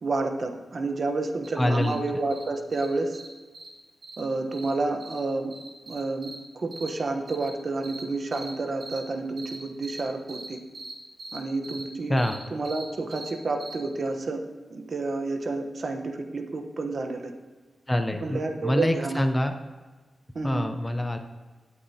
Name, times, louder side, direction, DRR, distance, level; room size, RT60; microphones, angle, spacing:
voice 1, 0.0-3.2 4.2-5.5 5.9-10.6 11.3-12.2 12.5-14.4 14.7-17.3 18.2-19.3 20.3-20.6, right 3 dB, 50° right, 5 dB, 0.9 m, -30 dB
sound 1, 1.4-1.5 1.8-1.9 2.3-2.4 2.7-2.9 3.1-3.3 3.5-3.7 4.0-4.2 4.5-4.7 5.0-5.2 5.5-6.3 6.7-6.9 7.3-7.5 7.8-8.0 8.3-8.5 8.8-9.0 9.4-9.6 9.8-10.0 10.3-10.5 10.7-10.9 11.2-11.4 11.6-11.8 12.2-12.4 12.6-12.8 13.1-13.3 13.6-13.7, right 3 dB, 70° right, 2.4 m, -41 dB
voice 2, 1.6-2.0 12.1-12.4 17.9-19.5 20.4-21.2, left 1 dB, 10° left, 5 dB, 0.6 m, -25 dB
16.5 x 8.5 x 2.8 m, 1.3 s
wide cardioid pair, 155°, 0 cm